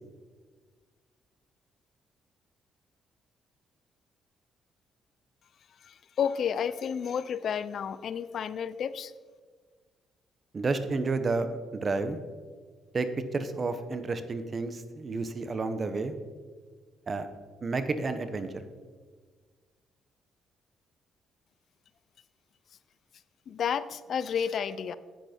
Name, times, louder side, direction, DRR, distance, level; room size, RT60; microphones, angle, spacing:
voice 1, 5.9-9.1 23.5-24.9, left 7 dB, 60° left, 16 dB, 0.5 m, -31 dB
voice 2, 10.5-12.2 12.9-16.1 17.1-17.3 17.6-18.6, right 3 dB, 35° right, 10 dB, 1.0 m, -31 dB
10.0 x 9.0 x 4.4 m, 1.5 s
cardioid pair, 90°, 0 cm